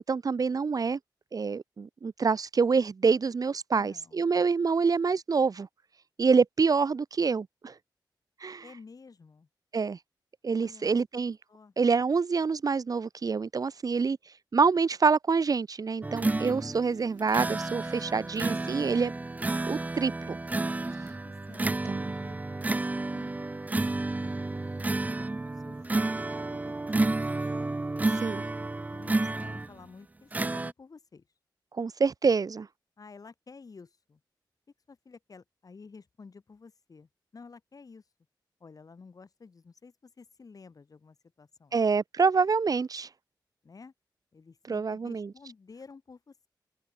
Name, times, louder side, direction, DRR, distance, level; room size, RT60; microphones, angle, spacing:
voice 1, 0.1-1.0 1.3-5.7 6.2-7.7 8.4-8.6 9.7-10.0 10.4-11.4 11.8-14.2 14.5-19.1 19.6-20.4 21.6-22.1 28.2-28.4 31.8-32.7 41.7-43.1 44.7-45.3, right 5 dB, 50° right, 1.2 m, -26 dB
voice 2, 3.7-4.3 8.6-9.5 10.6-10.9 11.5-11.7 21.2-22.7 23.1-23.3 24.1-27.8 28.0-31.3 33.0-34.2 34.9-38.0 38.6-41.8 43.6-43.9 44.3-46.5, left 4 dB, 50° left, 7.3 m, -52 dB
sound 1, 16.0-29.8 30.3-30.7, right 2 dB, 20° right, 0.5 m, -31 dB
open air
wide cardioid pair, 105°, 8 cm